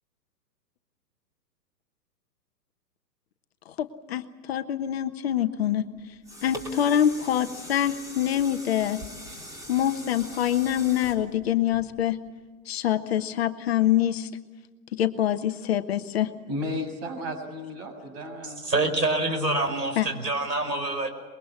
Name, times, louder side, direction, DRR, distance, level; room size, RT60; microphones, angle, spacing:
voice 1, 3.7-5.9 6.4-9.0 9.7-12.2 12.7-14.3 14.9-16.3 20.0-20.1, left 11 dB, 40° left, 9 dB, 1.2 m, -25 dB
sound 1, 5.9-12.3 12.8-12.9, equal, 5° right, 3.4 m, -42 dB
voice 2, 16.5-18.6, left 1 dB, 40° right, 6 dB, 6.9 m, -33 dB
voice 3, 18.6-21.1, right 2 dB, 75° right, 6 dB, 5.3 m, -26 dB
25.0 x 22.0 x 8.4 m, 1.4 s
figure-of-eight pair, 120°, 49 cm